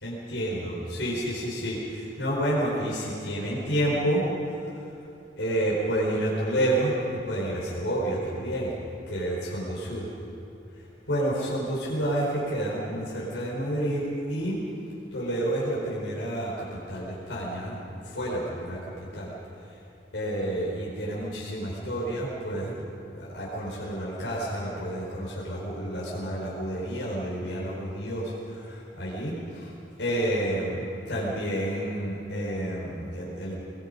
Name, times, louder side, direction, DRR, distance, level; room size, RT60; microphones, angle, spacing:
voice 1, 0.0-4.2 4.5-4.6 5.4-8.7 9.1-10.0 11.1-14.6 15.1-18.8 19.1-19.3 20.1-29.7 30.0-33.5, right 1 dB, 90° left, -6 dB, 4.7 m, -29 dB
23.5 x 20.5 x 5.4 m, 2.8 s
head